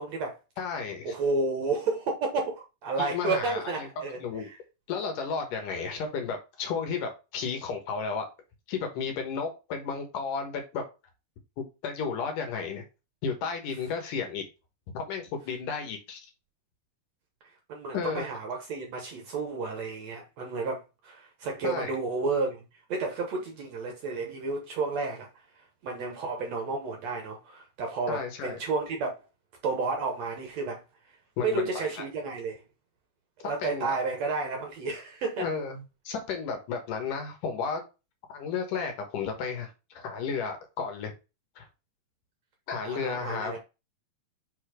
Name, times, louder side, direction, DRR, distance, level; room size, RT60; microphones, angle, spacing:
voice 1, 0.0-0.4 1.0-4.6 5.6-5.9 17.7-25.5 25.8-29.1 29.6-30.8 31.4-32.6 33.4-35.5 42.9-43.6, right 3 dB, 65° right, 1.9 m, -31 dB
voice 2, 0.6-1.1 3.0-3.9 4.2-4.5 4.9-8.3 8.7-10.8 11.6-12.8 13.2-14.4 14.9-16.2 17.9-18.2 21.6-22.0 28.1-28.6 31.4-31.9 33.6-33.9 35.4-37.8 38.3-41.1 41.6-41.7 42.7-43.6, left 5 dB, 70° left, 2.7 m, -33 dB
5.6 x 4.3 x 4.9 m
omnidirectional pair, 4.1 m